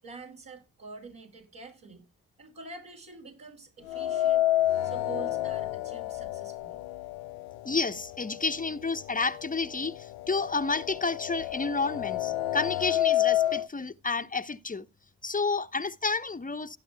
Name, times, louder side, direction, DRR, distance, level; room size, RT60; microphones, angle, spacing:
voice 1, 0.0-2.0 2.4-4.5 4.8-6.8, right 4 dB, 75° right, 7.1 m, -46 dB
sound 1, 3.9-7.9 8.3-8.4 9.3-9.4 9.8-13.7, left 13 dB, 85° left, 0.5 m, -29 dB
voice 2, 7.6-14.9 15.2-16.8, left 4 dB, 25° left, 0.8 m, -30 dB
17.5 x 8.8 x 2.2 m
supercardioid pair, 50°, 36 cm